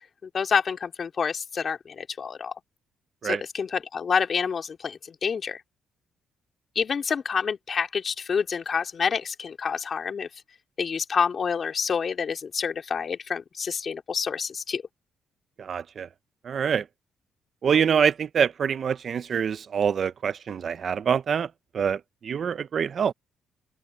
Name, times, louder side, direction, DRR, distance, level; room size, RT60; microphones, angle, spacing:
voice 1, 0.0-2.5 3.2-5.6 6.7-10.3 10.8-14.8, left 6 dB, 45° left, 2.7 m, -28 dB
voice 2, 15.6-16.1 16.4-16.9 17.6-23.1, right 7 dB, 50° right, 0.7 m, -25 dB
open air
cardioid pair, 90°, 0 cm